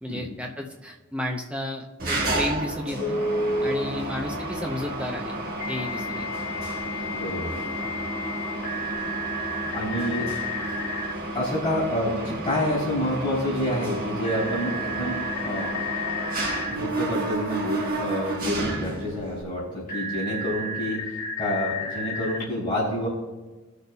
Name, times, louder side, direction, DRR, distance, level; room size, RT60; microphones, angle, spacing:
voice 1, 0.0-3.2 3.6-5.3 5.7-6.3, left 1 dB, 5° right, 1 dB, 0.6 m, -32 dB
Mechanisms, 2.0-19.4, right 2 dB, 40° right, 1.5 m, -31 dB
Telephone, 3.0-3.7 5.6-11.1 14.2-16.8 19.9-22.4, left 2 dB, 40° left, 1.3 m, -32 dB
voice 2, 7.1-7.5 9.7-10.3 11.3-15.1 15.4-15.8 16.7-23.1, left 1 dB, 25° left, -7 dB, 3.2 m, -28 dB
18.5 x 6.6 x 2.3 m, 1.2 s
head